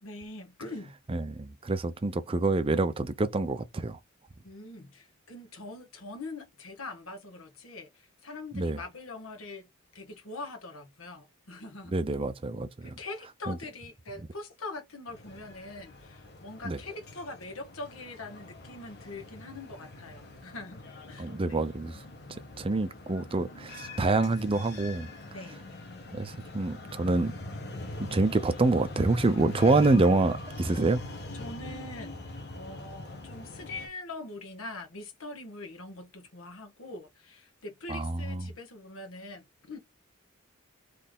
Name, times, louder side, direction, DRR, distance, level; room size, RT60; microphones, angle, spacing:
voice 1, 0.0-0.9 4.4-9.7 9.9-11.9 12.8-21.6 25.3-25.6 29.4-29.5 31.3-39.8, left 2 dB, 75° left, 1.5 m, -43 dB
voice 2, 1.1-4.0 8.5-8.8 11.9-12.9 13.5-13.6 16.6-16.8 21.2-22.0 22.6-25.1 26.1-27.3 28.0-31.0 37.9-38.5, right 2 dB, 25° right, 0.5 m, -26 dB
sound 1, 15.1-33.9, left 2 dB, 55° left, 1.3 m, -43 dB
4.2 x 3.2 x 3.6 m
head